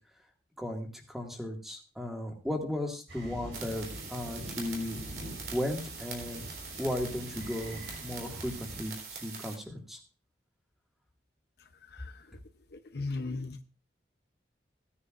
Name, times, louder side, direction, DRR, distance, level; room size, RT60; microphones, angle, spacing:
voice 1, 0.6-5.0 5.5-6.5 6.8-8.9 9.2-10.0, left 1 dB, ahead, 1 dB, 2.0 m, -35 dB
sound 1, 3.1-8.8, right 1 dB, 85° right, 4.3 m, -45 dB
sound 2, 3.5-9.6, right 5 dB, 60° right, 3.6 m, -43 dB
voice 2, 12.9-13.6, left 3 dB, 60° left, 8 dB, 0.8 m, -34 dB
17.0 x 9.7 x 2.5 m, 0.33 s
head